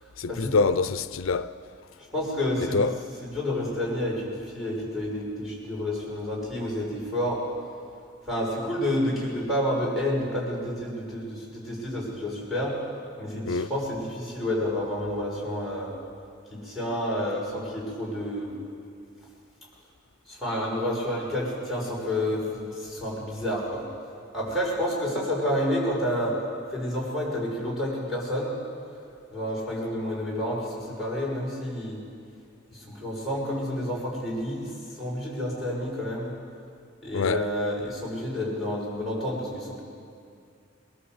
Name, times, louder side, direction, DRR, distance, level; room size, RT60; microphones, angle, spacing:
voice 1, 0.2-1.5 2.7-3.0 13.5-13.7 37.1-37.5, left 4 dB, 90° left, 0.6 m, -25 dB
voice 2, 2.0-7.4 8.3-12.7 13.2-15.9 16.5-18.6 20.3-23.9 24.3-26.4 26.7-28.5 29.3-32.0 32.7-34.7 35.0-36.3 37.0-39.8, left 1 dB, ahead, 6.3 m, -29 dB
22.5 x 17.0 x 7.9 m
head